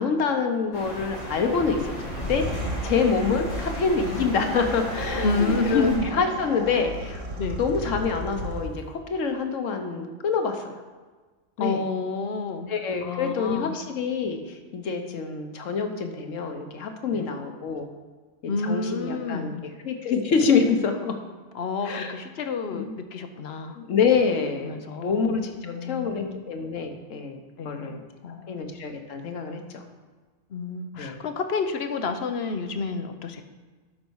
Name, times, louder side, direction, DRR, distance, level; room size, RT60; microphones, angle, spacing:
voice 1, 0.0-7.2 7.6-8.8 9.1-10.7 11.6-11.8 12.7-17.9 18.4-19.5 19.8-21.2 21.8-22.1 22.7-22.9 23.7-27.4 27.6-28.0 28.5-29.8 30.9-31.2, left 5 dB, 90° left, 5 dB, 1.3 m, -26 dB
King's Hut Day Through Window, 0.7-6.0, left 1 dB, 30° left, 2.2 m, -35 dB
sound 1, 2.1-8.9, right 1 dB, 80° right, 1.6 m, -34 dB
voice 2, 5.2-6.0 7.4-7.6 11.6-12.7 13.0-13.8 17.1-17.3 18.5-19.6 21.5-23.8 24.6-25.4 25.6-26.4 27.6-28.7 30.5-33.4, left 4 dB, 60° left, 7 dB, 1.0 m, -29 dB
12.0 x 5.3 x 4.7 m, 1.3 s
omnidirectional pair, 1.3 m